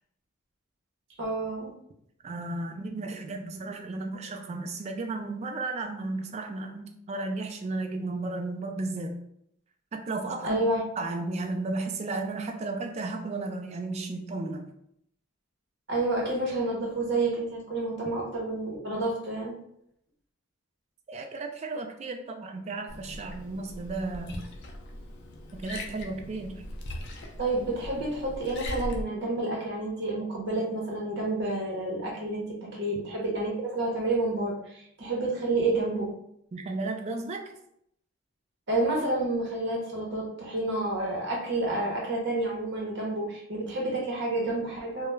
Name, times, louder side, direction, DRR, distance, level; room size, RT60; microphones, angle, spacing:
voice 1, 1.2-1.7 10.4-10.8 15.9-19.6 27.4-36.1 38.7-45.1, right 2 dB, 60° right, -2 dB, 0.8 m, -29 dB
voice 2, 2.2-9.2 9.9-10.7 11.0-14.7 21.1-24.5 25.5-26.7 36.5-37.5, right 3 dB, 35° right, 5 dB, 0.3 m, -34 dB
Liquid, 22.9-29.0, left 1 dB, 60° left, 0.4 m, -40 dB
2.2 x 2.0 x 3.1 m, 0.73 s
head